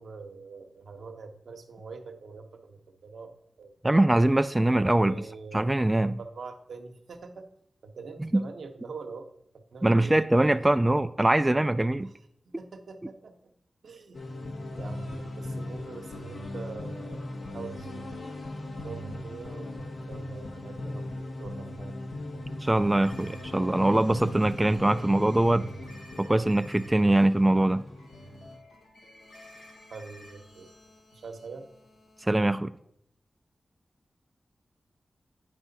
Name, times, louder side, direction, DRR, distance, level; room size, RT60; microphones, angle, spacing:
voice 1, 0.0-3.3 3.6-4.1 4.9-5.6 6.2-7.5 7.8-10.2 12.0-12.1 12.4-13.5 13.8-18.1 18.8-22.6 25.5-25.8 29.9-30.7 31.1-31.7, right 4 dB, 80° right, 6 dB, 0.8 m, -44 dB
voice 2, 3.8-5.1 5.5-6.2 8.2-8.4 9.8-12.1 22.6-25.7 26.2-27.8 32.3-32.7, right 1 dB, 20° right, 11 dB, 0.3 m, -23 dB
sound 1, 14.1-28.6, left 1 dB, 70° left, 1.1 m, -39 dB
sound 2, 23.0-32.4, left 1 dB, 90° left, 1.7 m, -54 dB
9.3 x 4.9 x 4.0 m, 0.74 s
cardioid pair, 50°, 0 cm